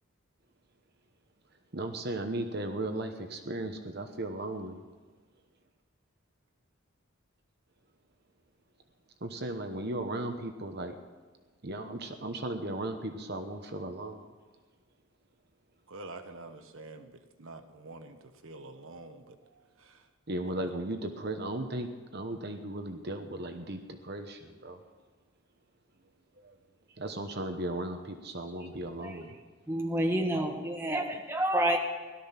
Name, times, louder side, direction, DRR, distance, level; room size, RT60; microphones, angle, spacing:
voice 1, 1.7-4.8 9.2-10.9 11.6-14.3 19.5-19.6 20.3-24.8 26.4-26.5 27.0-29.4, right 1 dB, 50° right, 6 dB, 1.0 m, -36 dB
voice 2, 15.9-19.4 19.8-20.0, right 2 dB, 70° right, 7 dB, 1.2 m, -47 dB
voice 3, 29.7-31.8, right 1 dB, 10° right, 2 dB, 1.2 m, -29 dB
17.0 x 12.5 x 5.9 m, 1.4 s
head